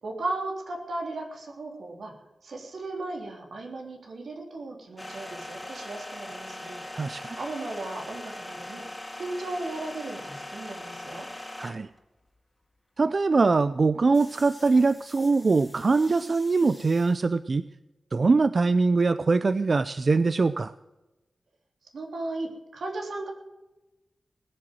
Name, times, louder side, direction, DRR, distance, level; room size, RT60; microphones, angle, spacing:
voice 1, 0.0-2.1 2.4-6.8 7.4-8.8 9.2-11.3 21.9-23.3, right 2 dB, 80° right, 1 dB, 3.5 m, -36 dB
sound 1, 5.0-12.0 14.1-17.1, left 1 dB, 10° left, 2.2 m, -41 dB
voice 2, 6.9-7.4 11.6-11.9 13.0-17.6 18.1-20.7, right 3 dB, 45° right, 13 dB, 0.4 m, -23 dB
20.0 x 7.7 x 7.8 m, 1.0 s
wide cardioid pair, 105°, 0 cm